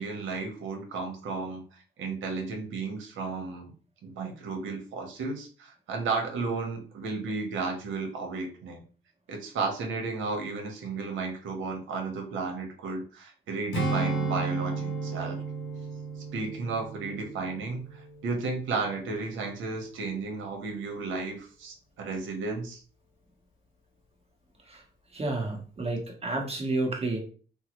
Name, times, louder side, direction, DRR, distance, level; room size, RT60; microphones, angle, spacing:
voice 1, 0.0-3.7 4.0-8.8 9.3-15.4 16.3-22.8, right 4 dB, 80° right, 3 dB, 0.9 m, -33 dB
Strum, 13.7-18.4 18.8-19.0, right 4 dB, 70° left, 0.9 m, -33 dB
voice 2, 25.1-27.2, right 2 dB, 30° right, 0 dB, 1.1 m, -30 dB
3.6 x 2.0 x 3.0 m, 0.40 s
cardioid pair, 90°, 20 cm